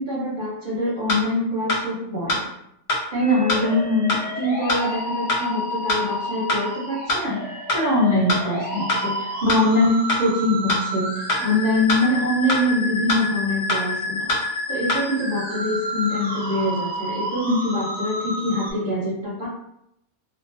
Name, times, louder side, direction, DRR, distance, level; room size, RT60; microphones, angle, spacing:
voice 1, 0.0-2.4 3.1-11.1 11.4-14.3 14.7-19.5, left 1 dB, 50° right, -6 dB, 0.6 m, -23 dB
sound 1, 1.1-1.2 1.7-1.8 2.3-2.4 2.9-3.0 3.5-3.6 4.1-4.2 4.7-4.8 5.3-5.4 5.9-6.0 6.5-6.6 7.1-7.2 7.7-7.8 8.3-8.4 8.9-9.0 9.5-9.6 10.1-10.2 10.7-10.8 11.3-11.4 11.9-12.0 12.5-12.6 13.1-13.2 13.7-13.8 14.3-14.4 14.9-15.0, left 1 dB, 55° left, 0.9 m, -22 dB
sound 2, 3.2-18.7, equal, 15° left, 0.3 m, -30 dB
2.4 x 2.1 x 2.4 m, 0.76 s
omnidirectional pair, 1.5 m